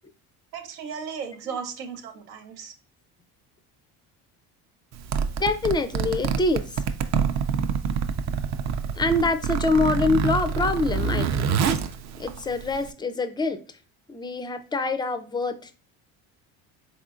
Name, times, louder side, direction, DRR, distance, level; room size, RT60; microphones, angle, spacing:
voice 1, 0.5-2.7, right 6 dB, 90° right, 5 dB, 0.8 m, -35 dB
Zipper (clothing), 4.9-12.9, right 6 dB, 45° right, 0.5 m, -26 dB
voice 2, 5.4-6.8 9.0-11.6 12.2-13.6 14.1-15.8, left 3 dB, 10° left, 9 dB, 0.3 m, -25 dB
3.7 x 3.6 x 2.4 m, 0.36 s
supercardioid pair, 80°, 39 cm